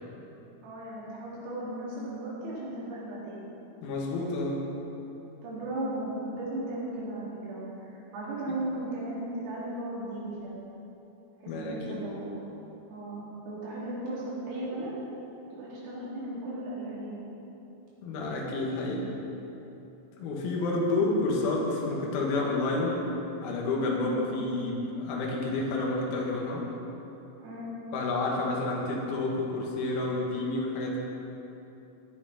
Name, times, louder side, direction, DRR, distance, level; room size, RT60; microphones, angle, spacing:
voice 1, 0.6-3.4 5.4-10.6 11.6-12.4 12.9-14.9 15.6-17.2 21.0-21.1 23.8-24.2 27.4-27.8, right 1 dB, 75° right, -8 dB, 5.9 m, -36 dB
voice 2, 3.8-4.6 8.5-8.6 11.5-12.0 18.0-19.1 20.2-23.0 23.4-26.6 27.9-31.0, left 2 dB, 85° left, -2 dB, 4.5 m, -29 dB
16.0 x 10.5 x 4.3 m, 3.0 s
omnidirectional pair, 6.0 m